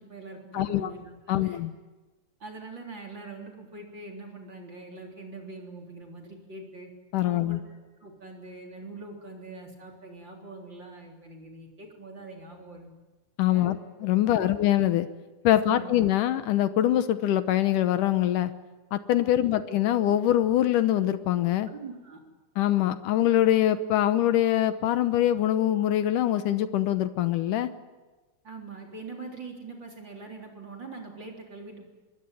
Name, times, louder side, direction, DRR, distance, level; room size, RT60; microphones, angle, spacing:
voice 1, 0.0-1.6 2.4-6.9 7.2-7.6 8.0-13.0 13.5-13.7 14.2-14.6 15.5-15.9 19.2-19.4 21.7-22.2 28.4-31.9, right 3 dB, 35° right, 1 dB, 4.1 m, -43 dB
voice 2, 0.5-0.9 1.3-1.7 7.1-7.6 13.4-15.1 15.4-18.5 18.9-21.7 22.6-27.7, left 12 dB, 80° left, 11 dB, 2.5 m, -24 dB
25.5 x 22.0 x 9.2 m, 1.2 s
omnidirectional pair, 3.7 m